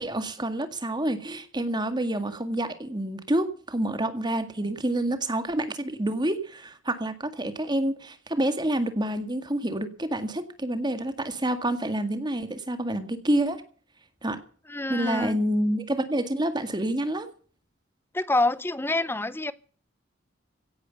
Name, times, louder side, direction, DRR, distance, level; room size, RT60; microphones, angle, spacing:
voice 1, 0.0-13.6 14.2-14.4 14.9-17.3, right 1 dB, 25° right, 1.9 m, -28 dB
voice 2, 14.7-15.4 18.1-19.5, left 2 dB, 10° left, 0.7 m, -26 dB
17.0 x 9.9 x 6.8 m
head